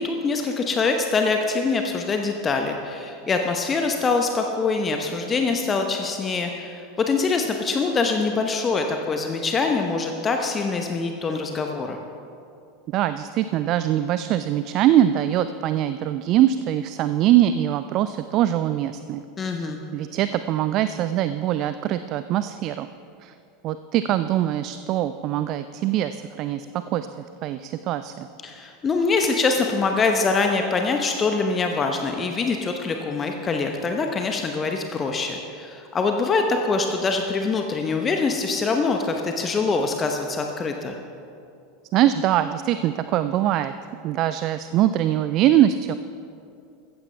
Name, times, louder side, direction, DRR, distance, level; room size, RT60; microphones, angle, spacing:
voice 1, 0.0-12.0 19.4-19.8 28.4-41.0, left 4 dB, 25° left, 4 dB, 0.9 m, -24 dB
voice 2, 12.9-19.2 19.9-22.9 23.2-23.3 23.6-26.7 26.9-28.3 41.9-43.7 44.0-45.9, right 12 dB, 45° right, 12 dB, 0.4 m, -22 dB
15.0 x 14.5 x 3.3 m, 2.5 s
figure-of-eight pair, 80°, 0 cm